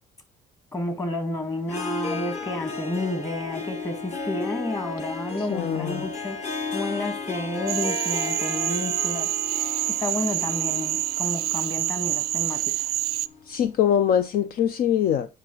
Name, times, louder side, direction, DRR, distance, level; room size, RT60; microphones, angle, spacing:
voice 1, 0.7-6.4 6.7-9.3 9.9-12.9, left 1 dB, 20° left, 2.0 m, -31 dB
Harp, 1.6-13.5, left 4 dB, 40° left, 1.8 m, -34 dB
voice 2, 5.5-6.0 13.5-15.3, left 9 dB, 60° left, 0.6 m, -23 dB
Cricket / Frog, 7.7-13.3, right 16 dB, 70° right, 0.4 m, -27 dB
9.0 x 5.4 x 3.9 m
cardioid pair, 110°, 17 cm